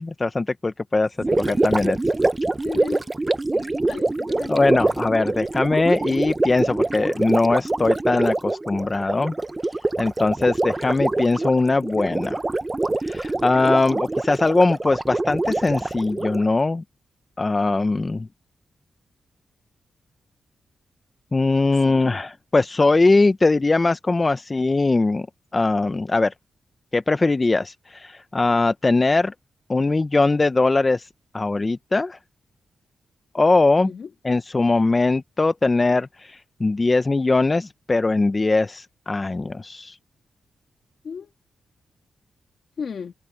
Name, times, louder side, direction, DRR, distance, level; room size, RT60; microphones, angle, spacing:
voice 1, 0.0-1.2 1.5-2.0 4.5-9.3 10.0-12.4 13.0-16.8 17.4-18.3 21.3-25.3 25.5-26.3 26.9-29.3 29.7-31.1 31.3-32.2 33.3-33.9 34.2-40.0, left 3 dB, 25° left, 0.6 m, -21 dB
Gurgling, 1.2-16.5, right 2 dB, 20° right, 0.8 m, -25 dB
voice 2, 1.3-1.9 2.6-3.1 3.5-4.9 21.8-22.2 33.8-34.1 41.0-41.3 42.8-43.1, left 6 dB, 60° left, 2.6 m, -36 dB
cardioid pair, 90°, 0 cm